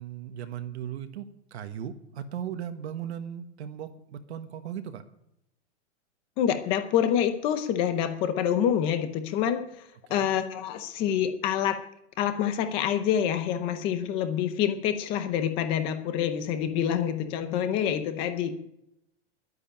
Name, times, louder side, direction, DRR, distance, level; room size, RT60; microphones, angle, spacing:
voice 1, 0.0-5.0 10.1-10.3, right 9 dB, 60° right, 7 dB, 1.5 m, -37 dB
voice 2, 6.4-9.6 10.1-11.8 12.2-18.6, left 9 dB, 15° left, 9 dB, 0.6 m, -27 dB
11.5 x 10.0 x 8.9 m, 0.81 s
supercardioid pair, 180°, 36 cm